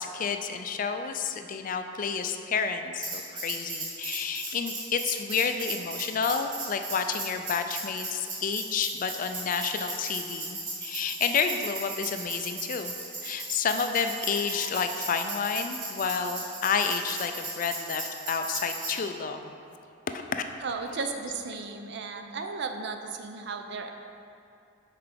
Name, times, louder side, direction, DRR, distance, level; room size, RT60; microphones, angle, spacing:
voice 1, 0.0-12.9 13.2-19.6 20.1-20.4, left 6 dB, 45° left, 7 dB, 0.3 m, -30 dB
Tambourine, 3.0-19.0, right 3 dB, 45° right, 1.4 m, -36 dB
voice 2, 20.6-23.9, right 4 dB, 60° right, 5 dB, 0.5 m, -35 dB
5.8 x 4.5 x 5.1 m, 2.6 s
head